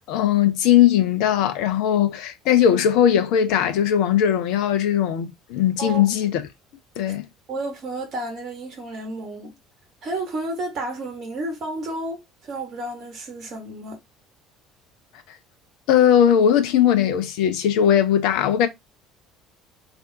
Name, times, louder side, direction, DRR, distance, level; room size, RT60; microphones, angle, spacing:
voice 1, 0.0-6.4 7.0-7.3 15.9-18.7, left 9 dB, 55° left, 0.4 m, -19 dB
voice 2, 7.5-9.5 10.0-14.0, right 2 dB, 40° right, 1.0 m, -31 dB
3.4 x 2.5 x 2.6 m
figure-of-eight pair, 60°, 0 cm